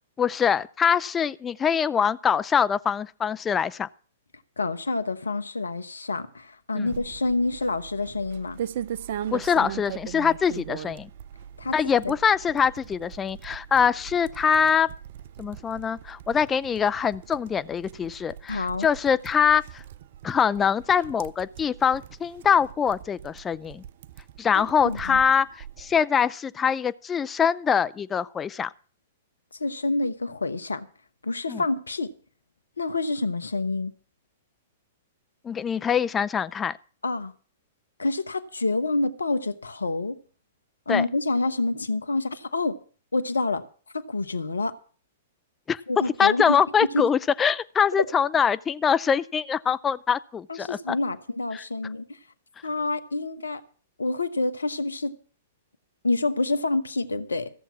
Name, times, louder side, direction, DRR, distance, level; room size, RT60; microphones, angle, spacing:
voice 1, 0.2-3.9 6.7-6.9 9.3-11.1 11.7-14.9 15.4-19.8 20.2-23.8 24.4-25.5 25.8-28.7 31.5-31.6 35.4-36.8 40.9-41.1 45.7-45.8 46.2-51.0 51.5-51.6, left 7 dB, 20° left, 0.5 m, -23 dB
voice 2, 4.6-8.6 11.6-11.7 12.0-12.1 18.5-18.9 24.5-25.2 29.6-30.9 31.2-32.1 32.8-33.9 37.0-37.3 38.0-40.2 40.9-42.8 43.1-43.6 43.9-44.7 45.9-46.6 46.9-47.0 50.5-52.2 52.6-53.6 54.0-55.1 56.0-57.5, left 3 dB, 80° left, 1.0 m, -27 dB
sound 1, 6.9-26.0, right 10 dB, 55° right, 0.6 m, -40 dB
15.0 x 7.3 x 7.1 m
figure-of-eight pair, 110°, 0 cm